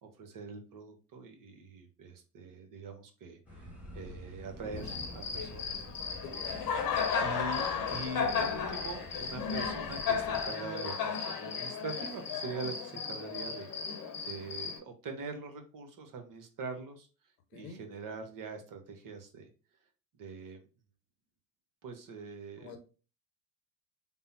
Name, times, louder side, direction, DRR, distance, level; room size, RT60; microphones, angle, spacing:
voice 1, 0.0-3.7 3.9-6.0 7.2-13.7 14.2-17.1 17.5-19.5 20.2-20.6 21.8-22.7, right 3 dB, 40° right, 5 dB, 0.9 m, -43 dB
sound 1, 3.5-10.5, left 1 dB, 5° right, 1.4 m, -48 dB
Cricket, 4.8-14.8, left 6 dB, 40° left, 1.0 m, -34 dB
voice 2, 6.2-6.6 17.5-17.8 22.6-22.8, left 5 dB, 70° left, 5 dB, 1.0 m, -47 dB
3.6 x 2.0 x 4.1 m, 0.35 s
hypercardioid pair, 75°, 50 cm